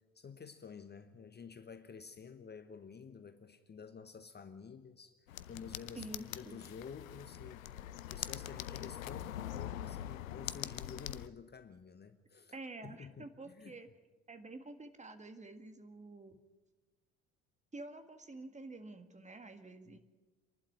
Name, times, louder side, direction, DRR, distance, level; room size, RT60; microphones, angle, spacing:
voice 1, 0.0-5.1 5.5-12.5 12.8-13.8 19.9-20.0, left 6 dB, 25° left, 10 dB, 1.1 m, -51 dB
sound 1, 5.3-11.3, left 12 dB, 80° left, 0.7 m, -43 dB
voice 2, 5.9-6.6 12.5-13.9 14.3-16.4 17.7-20.0, right 2 dB, 15° right, 9 dB, 1.8 m, -49 dB
27.5 x 11.5 x 8.8 m, 1.2 s
hypercardioid pair, 60°, 40 cm